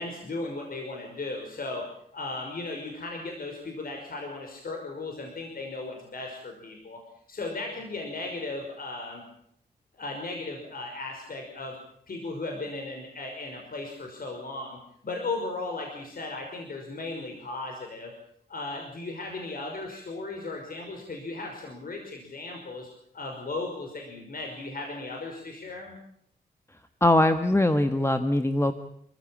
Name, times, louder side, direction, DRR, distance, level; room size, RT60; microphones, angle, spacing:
voice 1, 0.0-1.8 2.1-7.0 7.3-9.2 9.9-11.8 12.1-14.8 15.0-18.1 18.5-22.9 23.1-26.0, left 2 dB, 55° left, 2 dB, 5.7 m, -36 dB
voice 2, 27.0-28.7, left 1 dB, 15° left, 9 dB, 1.6 m, -22 dB
28.0 x 15.5 x 8.8 m, 0.71 s
cardioid pair, 80°, 18 cm